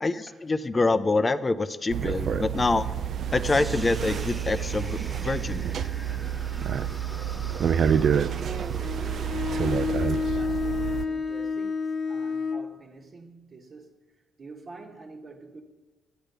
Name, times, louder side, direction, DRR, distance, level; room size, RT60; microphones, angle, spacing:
voice 1, 0.0-2.8 3.3-5.6, left 3 dB, 25° left, 0.6 m, -26 dB
sound 1, 1.9-11.1, right 8 dB, 60° right, 0.5 m, -28 dB
sound 2, 3.4-11.5, equal, 5° right, 1.5 m, -47 dB
voice 2, 8.3-13.9 14.4-15.6, right 3 dB, 45° right, 1.5 m, -45 dB
Bowed string instrument, 8.8-12.7, left 5 dB, 55° left, 1.0 m, -29 dB
11.5 x 8.9 x 6.7 m
cardioid pair, 90°, 0 cm